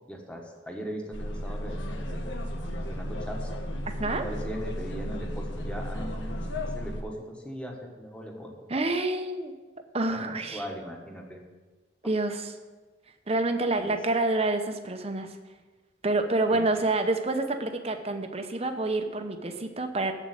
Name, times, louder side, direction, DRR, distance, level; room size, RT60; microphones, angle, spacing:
voice 1, 0.1-2.4 2.8-3.5 4.1-6.5 6.7-8.8 10.1-11.4 13.8-13.9 16.5-16.7, equal, 5° left, 0 dB, 1.4 m, -39 dB
sound 1, 1.1-7.0, equal, 75° left, 1.2 m, -34 dB
voice 2, 8.7-9.5 9.9-10.6 12.0-12.5 13.3-15.4 16.0-20.1, right 2 dB, 30° right, 6 dB, 0.9 m, -28 dB
8.0 x 7.2 x 7.8 m, 1.3 s
head